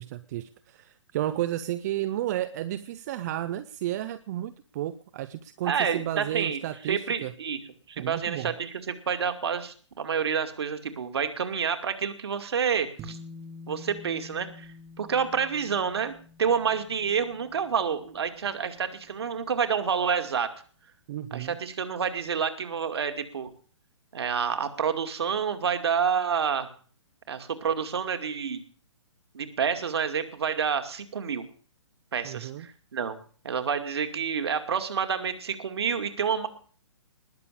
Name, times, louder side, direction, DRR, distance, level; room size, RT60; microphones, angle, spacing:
voice 1, 0.0-7.3 8.0-8.5 21.1-21.6 32.2-32.7, right 13 dB, 35° right, 13 dB, 0.8 m, -32 dB
voice 2, 5.6-7.6 7.9-13.2 13.7-14.7 15.0-20.5 21.3-23.5 24.1-26.7 27.3-28.6 29.3-31.4 32.1-33.2 33.4-36.5, right 7 dB, 60° right, 8 dB, 2.3 m, -28 dB
sound 1, 13.0-19.6, left 2 dB, 20° right, 1.7 m, -48 dB
20.0 x 7.0 x 8.7 m, 0.43 s
figure-of-eight pair, 125°, 15 cm